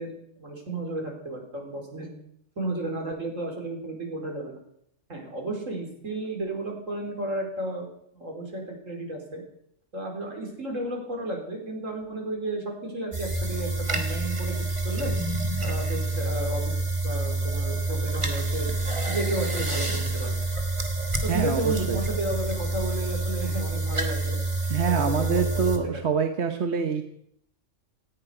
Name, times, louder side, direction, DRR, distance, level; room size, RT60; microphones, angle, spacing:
voice 1, 0.0-2.1 2.6-4.6 5.1-7.9 8.1-9.4 9.9-14.5 14.8-15.1 15.6-16.7 17.0-18.7 19.1-20.4 21.2-24.4 24.9-26.1, right 1 dB, 80° right, 1 dB, 4.6 m, -33 dB
sound 1, 13.1-25.8, right 2 dB, 25° right, 1.9 m, -28 dB
voice 2, 21.3-22.0 24.7-27.0, right 6 dB, 60° right, 7 dB, 1.3 m, -26 dB
18.0 x 15.5 x 5.0 m, 0.71 s
omnidirectional pair, 1.3 m